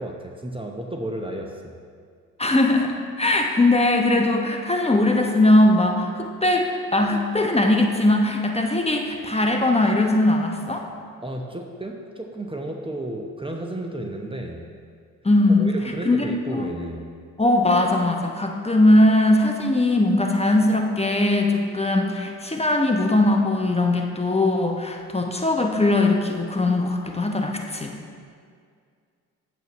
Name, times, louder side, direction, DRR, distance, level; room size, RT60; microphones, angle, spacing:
voice 1, 0.0-1.7 11.2-14.7 15.6-17.1, right 1 dB, 15° right, 1 dB, 0.9 m, -32 dB
voice 2, 2.4-10.9 15.2-15.7 16.0-16.7 17.4-28.0, left 2 dB, 15° left, 2 dB, 1.0 m, -20 dB
9.1 x 7.9 x 3.1 m, 2.1 s
hypercardioid pair, 45°, 40 cm